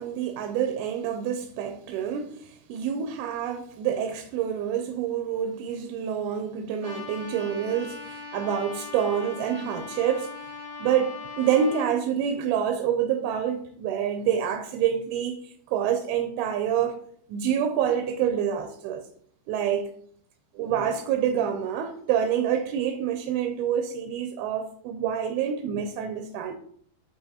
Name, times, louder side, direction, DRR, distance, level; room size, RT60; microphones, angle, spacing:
voice 1, 0.0-10.4 10.8-17.0 17.3-19.0 19.5-19.9 20.6-26.5, right 9 dB, 80° right, 2.4 m, -27 dB
Trumpet, 6.8-11.9, left 4 dB, 30° right, 1.0 m, -39 dB
11.0 x 4.1 x 2.8 m
omnidirectional pair, 4.6 m